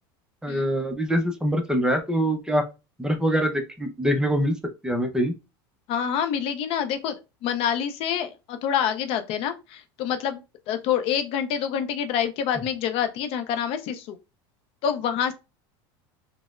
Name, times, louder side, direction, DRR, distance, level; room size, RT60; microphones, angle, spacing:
voice 1, 0.4-2.6 3.0-4.5 4.8-5.3 12.6-12.7, equal, 5° right, 0.5 m, -24 dB
voice 2, 5.9-10.4 10.7-14.2 14.8-15.3, left 8 dB, 50° left, 0.4 m, -27 dB
4.1 x 2.0 x 2.3 m
supercardioid pair, 120°, 12 cm